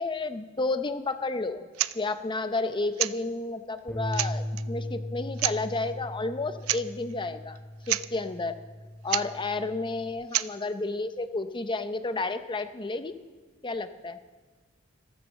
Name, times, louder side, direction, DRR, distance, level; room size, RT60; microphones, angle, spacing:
voice 1, 0.0-1.6 1.9-7.6 7.9-8.6 9.0-13.1 13.6-14.2, left 3 dB, 25° left, 10 dB, 0.7 m, -31 dB
sound 1, 1.7-2.0 2.9-3.2 3.8-3.9 4.1-4.6 5.4-5.6 6.6-6.8 7.1-7.2 7.6-7.7 7.8-8.1 9.1-9.3 10.3-10.5, right 15 dB, 90° right, 0.4 m, -28 dB
Bass guitar, 3.9-10.1, left 1 dB, 5° left, 1.7 m, -38 dB
14.0 x 12.5 x 7.4 m, 1.4 s
head